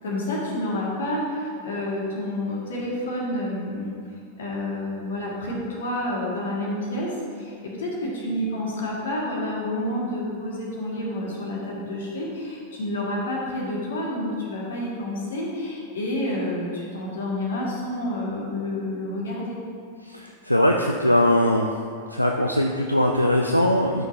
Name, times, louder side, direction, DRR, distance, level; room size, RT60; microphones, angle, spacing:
voice 1, 0.0-3.9 4.4-19.6, left 1 dB, 65° left, -3 dB, 2.0 m, -29 dB
voice 2, 20.0-21.7 22.1-24.0, left 1 dB, 90° left, 2 dB, 0.4 m, -21 dB
12.5 x 5.8 x 2.8 m, 2.2 s
figure-of-eight pair, 90°, 0 cm